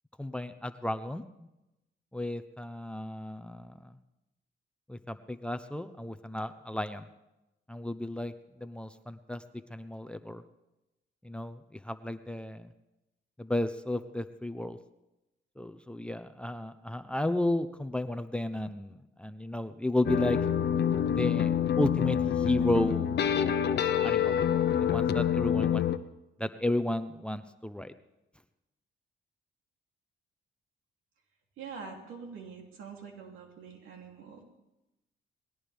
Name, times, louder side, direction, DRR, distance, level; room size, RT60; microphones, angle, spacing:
voice 1, 0.2-1.2 2.1-3.9 4.9-7.1 7.7-8.3 8.6-9.4 9.7-10.4 11.2-12.7 13.4-14.8 15.6-20.4 21.1-23.2 24.0-24.3 24.8-25.8 26.4-27.9, left 1 dB, 5° left, 11 dB, 0.8 m, -33 dB
sound 1, 20.1-26.0, left 8 dB, 60° left, 0.9 m, -27 dB
voice 2, 31.6-34.4, right 5 dB, 85° right, 1 dB, 3.1 m, -45 dB
20.5 x 17.5 x 3.5 m, 0.96 s
cardioid pair, 90°, 20 cm